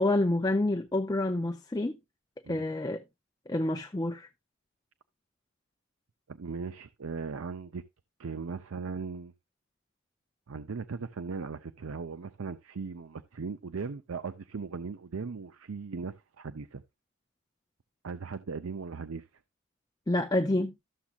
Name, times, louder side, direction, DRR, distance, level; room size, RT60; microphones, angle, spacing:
voice 1, 0.0-2.0 2.5-3.0 3.5-4.3 20.1-20.7, left 1 dB, 20° left, 0.5 m, -28 dB
voice 2, 6.3-7.8 8.2-9.3 10.5-16.8 18.0-19.3, right 5 dB, 90° right, 0.6 m, -38 dB
13.5 x 7.2 x 2.4 m
head